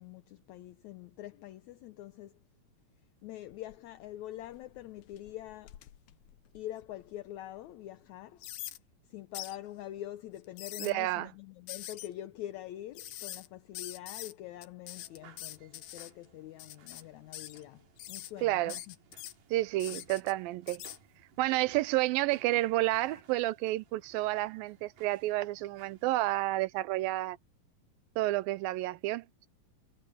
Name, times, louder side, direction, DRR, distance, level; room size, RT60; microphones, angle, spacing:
voice 1, 0.0-2.4 3.2-5.8 6.5-8.5 9.0-19.0 19.9-20.0, left 13 dB, 75° left, 1.8 m, -45 dB
sound 1, 3.5-4.0 4.4-7.1 7.6-7.7 8.4-8.8 9.3-9.6 10.4-10.9 11.7-12.1 13.0-13.5 13.7-14.3 14.6-16.1 16.6-17.0 17.3-17.6 18.0-18.3 18.7-19.3 19.8-20.3 20.7-21.0, left 13 dB, 90° left, 2.9 m, -44 dB
voice 2, 10.8-11.3 18.4-18.8 19.5-20.8 21.4-27.4 28.2-29.5, right 17 dB, 90° right, 2.5 m, -30 dB
sound 2, 14.9-26.5, right 7 dB, 70° right, 3.8 m, -60 dB
omnidirectional pair, 4.0 m